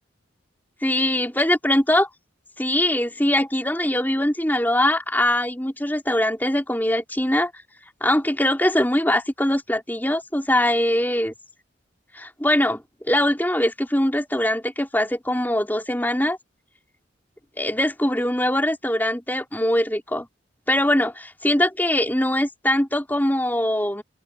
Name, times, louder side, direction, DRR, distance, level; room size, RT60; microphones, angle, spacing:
voice 1, 0.8-2.1 2.6-7.5 8.0-11.3 12.1-12.8 13.1-16.4 17.6-20.3 20.7-24.0, left 1 dB, 10° left, 4.4 m, -22 dB
open air
head